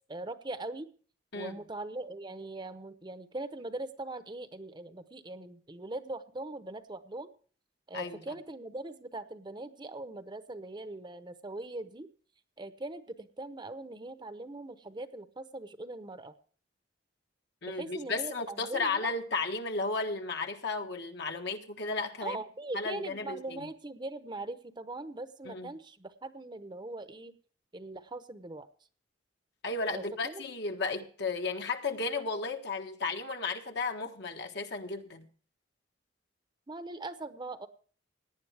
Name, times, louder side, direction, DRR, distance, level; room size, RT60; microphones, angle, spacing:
voice 1, 0.1-0.9 1.3-7.3 7.9-12.1 12.6-16.3 17.7-19.1 22.2-27.3 27.7-28.7 29.9-30.4 36.7-37.7, right 2 dB, 25° right, 10 dB, 0.8 m, -41 dB
voice 2, 17.6-22.4 22.7-23.7 25.4-25.7 29.6-35.3, left 3 dB, 60° left, 4 dB, 1.5 m, -34 dB
18.0 x 10.0 x 3.4 m, 0.43 s
head